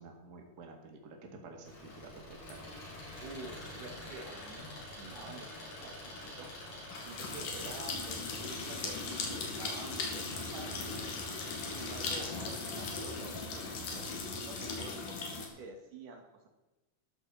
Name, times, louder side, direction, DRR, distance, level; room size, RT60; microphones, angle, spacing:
voice 1, 0.0-1.7 2.0-2.8, right 3 dB, 35° right, 2 dB, 2.0 m, -50 dB
Engine, 1.6-14.2, left 1 dB, 65° left, 5.1 m, -47 dB
sound 1, 2.5-15.5, left 3 dB, 90° left, 3.6 m, -40 dB
voice 2, 3.2-6.5 7.0-11.2 11.7-16.5, right 3 dB, 90° right, 2 dB, 3.7 m, -49 dB
13.0 x 11.5 x 4.2 m, 1.1 s
omnidirectional pair, 3.6 m